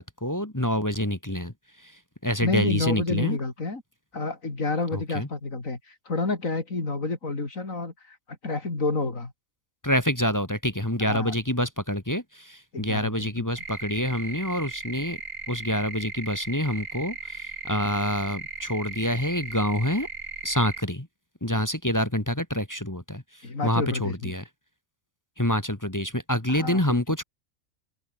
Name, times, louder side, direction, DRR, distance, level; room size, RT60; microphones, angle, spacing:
voice 1, 0.0-1.5 1.8-1.9 2.2-3.4 4.9-5.3 9.8-15.2 15.5-20.1 20.4-21.1 21.4-23.2 23.6-24.4 25.4-27.2, equal, 15° left, 2.2 m, -27 dB
voice 2, 2.4-3.8 4.1-9.3 11.0-11.3 12.7-13.5 23.4-24.3 26.5-27.0, left 3 dB, 85° left, 4.2 m, -29 dB
sound 1, 13.6-20.8, right 3 dB, 75° right, 3.4 m, -37 dB
open air
omnidirectional pair, 1.4 m